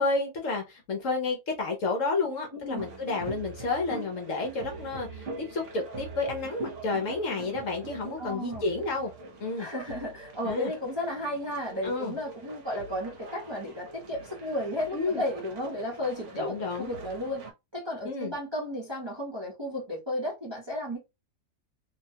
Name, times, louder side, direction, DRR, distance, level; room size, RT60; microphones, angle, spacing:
voice 1, 0.0-9.1 9.4-9.7 10.4-10.7 11.8-12.2 14.9-15.2 16.3-16.9 18.0-18.3, left 3 dB, 60° left, 1.0 m, -30 dB
voice 2, 2.5-2.8 8.2-8.6 9.6-17.4 17.7-21.0, left 1 dB, 20° right, 0.7 m, -33 dB
sound 1, 2.8-17.5, right 3 dB, 55° right, 1.1 m, -43 dB
2.8 x 2.2 x 2.7 m
omnidirectional pair, 1.7 m